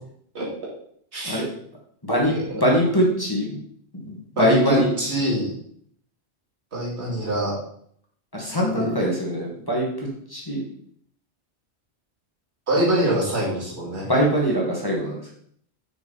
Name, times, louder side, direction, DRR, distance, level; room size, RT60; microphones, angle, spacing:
voice 1, 2.0-3.6 4.0-4.9 8.3-10.6 14.1-15.2, equal, 20° left, -3 dB, 1.8 m, -22 dB
voice 2, 4.4-5.5 6.7-7.5 8.8-8.9 12.7-14.1, right 1 dB, 80° right, -6 dB, 2.9 m, -24 dB
6.0 x 6.0 x 4.1 m, 0.65 s
omnidirectional pair, 1.1 m